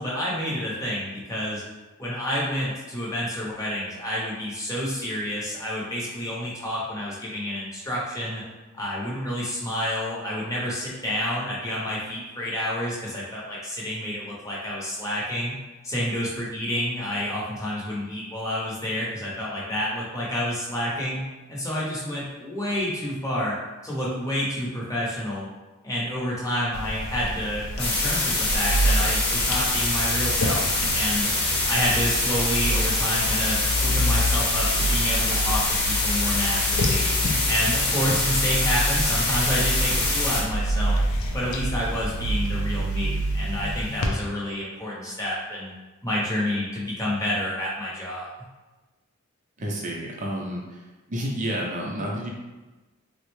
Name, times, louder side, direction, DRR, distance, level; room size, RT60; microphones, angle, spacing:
voice 1, 0.0-1.6 2.0-8.4 8.7-15.6 15.8-23.6 23.8-25.5 25.8-31.3 31.7-37.1 37.5-41.0 41.3-45.7 46.0-48.3, equal, 15° left, -6 dB, 0.7 m, -29 dB
sound 1, 26.7-44.1, equal, 75° left, 0.4 m, -28 dB
sound 2, 27.8-40.4, left 2 dB, 50° left, 0.7 m, -25 dB
voice 2, 49.6-50.8 51.1-52.3, equal, 35° right, -2 dB, 0.5 m, -30 dB
3.5 x 2.1 x 3.1 m, 1.2 s
head